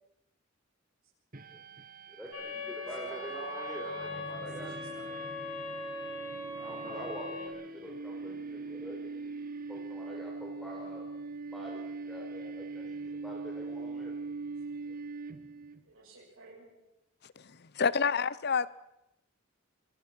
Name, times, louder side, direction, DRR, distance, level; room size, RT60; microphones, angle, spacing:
sound 1, 1.3-15.8, right 3 dB, 45° right, 1.4 m, -42 dB
voice 1, 2.1-4.7 6.6-9.1 9.7-11.0 11.5-13.0 13.2-14.1 14.9-15.0, equal, ahead, 4.9 m, -45 dB
sound 2, 2.3-7.5, left 1 dB, 75° left, 6.8 m, -40 dB
voice 2, 2.7-5.3 15.8-16.8, right 2 dB, 80° right, 7.2 m, -51 dB
voice 3, 17.4-18.7, left 5 dB, 50° left, 0.8 m, -29 dB
26.0 x 23.5 x 6.1 m
head